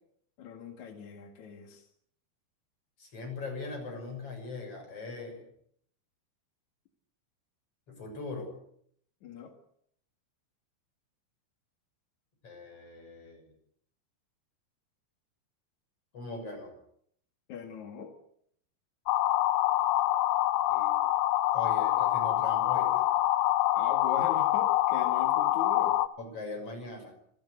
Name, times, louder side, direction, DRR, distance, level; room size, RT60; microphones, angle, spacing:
voice 1, 0.4-1.9 9.2-9.5 17.5-18.1 23.7-26.0, left 5 dB, 55° left, 4 dB, 2.2 m, -41 dB
voice 2, 3.0-5.4 7.9-8.5 12.4-13.4 16.1-16.7 20.7-21.0 21.5-23.0 26.2-27.1, left 3 dB, 30° left, 3 dB, 7.8 m, -40 dB
sound 1, 19.1-26.1, left 14 dB, 80° left, 3.6 m, -26 dB
26.5 x 17.0 x 8.1 m, 0.70 s
omnidirectional pair, 5.9 m